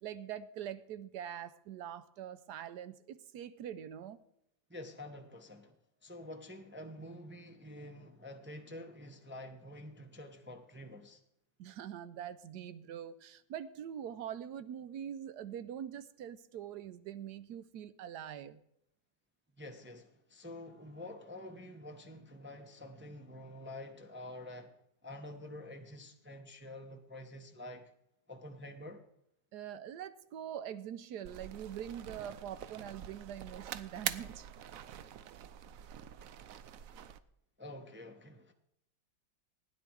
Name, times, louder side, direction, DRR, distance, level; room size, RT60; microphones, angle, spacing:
voice 1, 0.0-4.2 11.6-18.6 29.5-34.5, right 9 dB, 70° right, 1.1 m, -44 dB
voice 2, 4.7-5.8 6.0-11.2 19.6-24.7 25.0-27.9 28.3-29.0 37.6-38.5, left 1 dB, 10° right, 0.5 m, -48 dB
sound 1, 31.2-37.2, right 10 dB, 90° right, 0.7 m, -44 dB
16.5 x 10.0 x 4.7 m
omnidirectional pair, 2.2 m